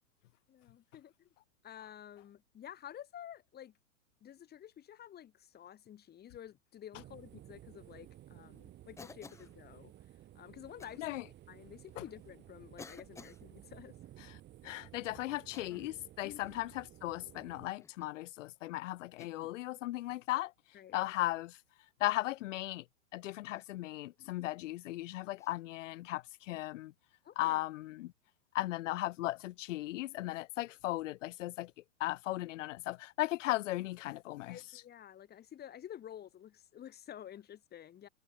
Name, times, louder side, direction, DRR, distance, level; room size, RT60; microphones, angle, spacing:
voice 1, 0.5-1.3 1.6-3.7 4.2-9.9 10.3-11.2 11.5-13.9 16.2-16.4 20.7-21.1 24.4-24.5 26.5-26.6 27.2-27.6 34.5-38.1, left 10 dB, 25° left, 4.1 m, -51 dB
sound 1, 6.9-17.7, right 13 dB, 25° right, 2.4 m, -55 dB
Cough, 9.0-9.5 10.8-11.0 11.9-12.0 12.8-13.4 15.4-16.0 16.4-16.7 17.8-18.2 19.2-19.6 21.0-21.3 23.5-23.7 25.4-25.6, left 5 dB, 5° left, 0.7 m, -54 dB
voice 2, 14.6-20.5 20.9-21.6 22.0-22.8 23.1-26.9 27.4-28.1 28.5-31.7 32.0-34.6, left 17 dB, 60° left, 0.5 m, -37 dB
hypercardioid pair, 125°, 41 cm